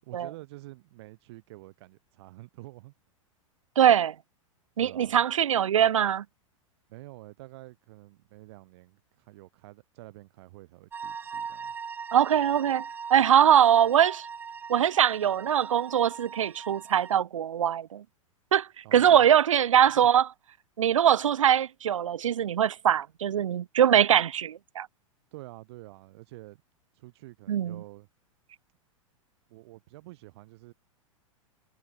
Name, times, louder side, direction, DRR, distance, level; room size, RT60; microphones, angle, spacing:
voice 1, 0.0-2.9 4.8-5.2 6.9-11.7 18.8-19.3 19.8-20.1 25.3-26.6 26.9-28.1 29.5-30.7, right 19 dB, 50° right, 7.9 m, -48 dB
voice 2, 3.8-4.2 4.8-6.2 12.1-12.8 13.1-14.3 14.7-18.0 18.5-20.3 20.8-24.9 27.5-27.8, right 9 dB, 70° right, 0.4 m, -22 dB
sound 1, 10.9-17.2, right 6 dB, 10° right, 0.4 m, -40 dB
figure-of-eight pair, 95°, 17 cm